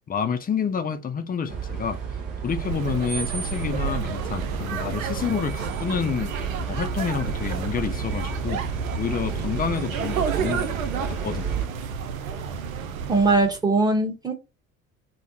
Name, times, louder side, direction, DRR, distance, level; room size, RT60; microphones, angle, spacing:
voice 1, 0.1-2.0 2.4-6.3 6.7-8.6 9.0-10.7 11.1-11.7, left 7 dB, 20° left, 0.6 m, -28 dB
sound 1, 1.5-11.7, right 6 dB, 50° right, 1.0 m, -32 dB
sound 2, 2.5-13.6, right 6 dB, 75° right, 0.6 m, -31 dB
voice 2, 13.1-14.3, right 3 dB, 10° right, 1.1 m, -20 dB
3.4 x 2.1 x 2.7 m
figure-of-eight pair, 65°, 41 cm